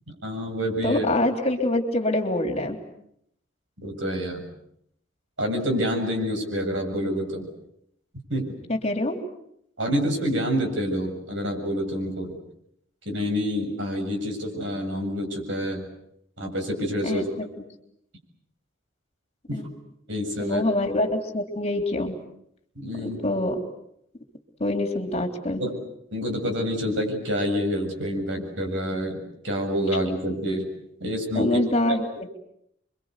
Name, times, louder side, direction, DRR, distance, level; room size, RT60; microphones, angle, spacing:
voice 1, 0.2-1.1 3.8-4.4 5.4-7.5 8.3-8.5 9.8-12.4 13.1-15.8 16.4-17.3 19.5-19.6 20.1-20.6 22.8-23.2 25.6-25.7 26.1-30.7 31.0-31.6 31.9-32.0, equal, 70° right, 3 dB, 7.4 m, -27 dB
voice 2, 0.8-2.8 8.7-9.2 17.0-17.2 19.5-19.6 20.4-22.2 23.0-23.6 24.6-25.6 31.3-32.3, left 1 dB, 30° left, 5 dB, 3.3 m, -25 dB
29.0 x 24.0 x 8.3 m, 0.73 s
head